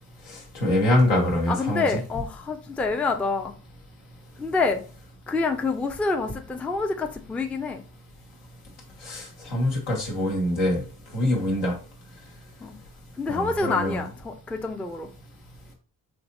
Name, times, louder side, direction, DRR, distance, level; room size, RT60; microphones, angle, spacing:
voice 1, 0.5-1.9 9.0-10.8 11.1-11.7 13.3-14.0, left 1 dB, 85° left, 1.2 m, -24 dB
voice 2, 1.5-3.5 4.4-4.8 5.3-7.8 12.6-12.7 13.2-15.1, left 3 dB, 5° left, 0.3 m, -27 dB
3.2 x 2.7 x 2.6 m
hypercardioid pair, 45°, 48 cm